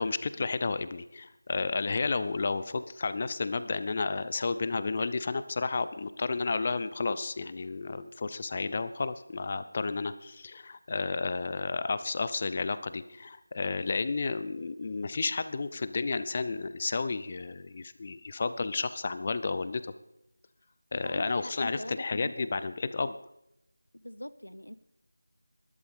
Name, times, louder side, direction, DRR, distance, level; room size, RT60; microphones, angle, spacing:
voice 1, 0.0-19.9 20.9-23.2, left 4 dB, 30° left, 13 dB, 0.7 m, -32 dB
voice 2, 21.0-22.5 23.9-24.8, left 1 dB, 80° left, 15 dB, 1.1 m, -42 dB
18.5 x 12.5 x 5.2 m, 0.84 s
figure-of-eight pair, 165°, 0 cm